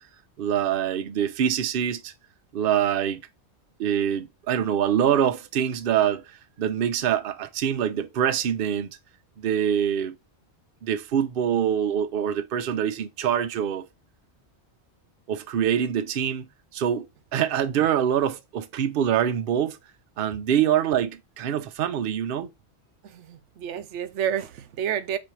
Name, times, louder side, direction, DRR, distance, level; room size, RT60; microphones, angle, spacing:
voice 1, 0.4-2.1 2.5-3.2 3.8-8.9 9.4-10.2 10.8-13.9 15.3-16.5 16.7-17.1 17.3-19.8 20.2-22.5, right 9 dB, 60° right, 0.8 m, -25 dB
voice 2, 23.0-25.2, right 9 dB, 90° right, 0.9 m, -30 dB
4.3 x 2.7 x 4.5 m
omnidirectional pair, 1.2 m